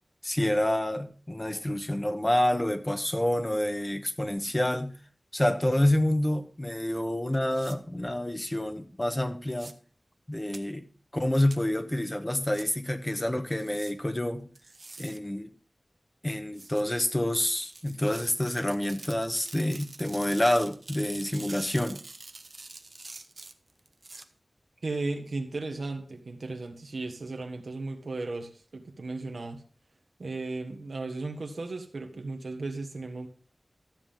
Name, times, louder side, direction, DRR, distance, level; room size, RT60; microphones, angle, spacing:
voice 1, 0.2-4.9 5.3-9.7 10.3-10.8 11.1-14.5 15.0-15.5 16.2-22.0, left 1 dB, 25° left, 8 dB, 1.1 m, -28 dB
sound 1, 7.5-7.8 9.5-9.7 10.5-10.6 11.5-11.6 12.5-12.6 13.6-13.9 14.6-15.2 16.5-16.8 17.5-24.2, right 3 dB, 65° right, 0.8 m, -46 dB
voice 2, 24.8-29.6 30.2-33.3, right 3 dB, 90° right, 5 dB, 1.5 m, -35 dB
13.5 x 7.4 x 3.7 m, 0.39 s
wide cardioid pair, 55°, 0 cm